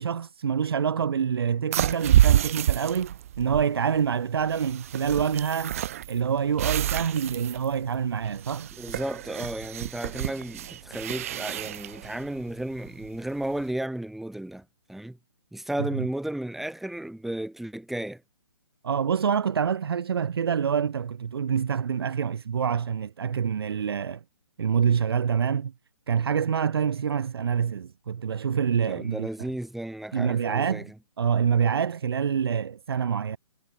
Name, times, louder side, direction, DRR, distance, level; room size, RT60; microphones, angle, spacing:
voice 1, 0.0-5.8 6.1-8.7 15.8-16.1 18.8-24.2 24.6-25.7 26.1-29.5 30.1-30.9 31.2-33.4, right 7 dB, 50° right, 1.1 m, -26 dB
sound 1, 1.7-13.6, right 12 dB, 30° right, 0.4 m, -28 dB
voice 2, 8.8-15.2 15.5-18.2 28.9-30.9, right 1 dB, ahead, 3.1 m, -34 dB
figure-of-eight pair, 135°, 16 cm